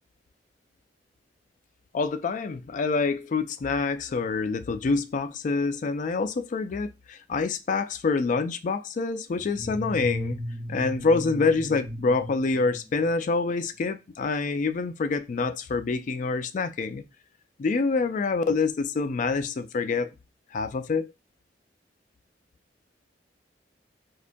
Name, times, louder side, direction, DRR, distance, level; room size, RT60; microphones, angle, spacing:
voice 1, 1.9-10.4 10.7-17.0 17.6-20.1 20.5-21.1, left 4 dB, 45° left, 0.3 m, -26 dB
sound 1, 9.4-13.5, equal, 20° right, 1.0 m, -36 dB
5.2 x 2.2 x 2.5 m
head